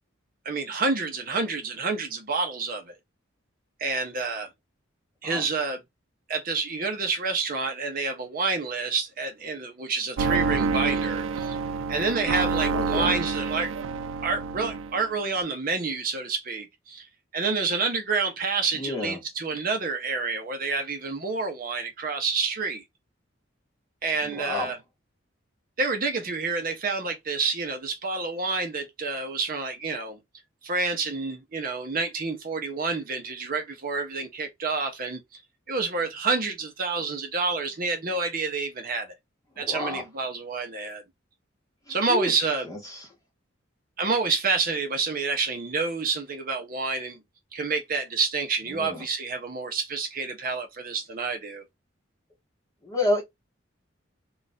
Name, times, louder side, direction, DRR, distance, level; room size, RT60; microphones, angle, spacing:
voice 1, 0.4-2.9 3.8-4.5 5.2-5.8 6.3-11.6 11.9-13.7 14.2-17.1 17.3-22.8 24.0-24.8 25.8-30.2 30.6-35.4 35.7-39.1 39.6-41.0 41.9-42.7 44.0-47.2 47.5-51.6, right 4 dB, 45° right, 0.7 m, -28 dB
sound 1, 10.2-15.1, right 4 dB, 90° right, 0.4 m, -28 dB
voice 2, 12.7-13.2 18.7-19.2 24.2-24.7 39.6-40.0 41.9-42.3 42.6-43.1 48.7-49.0 52.8-53.2, left 2 dB, 15° left, 1.1 m, -30 dB
2.5 x 2.4 x 4.0 m
head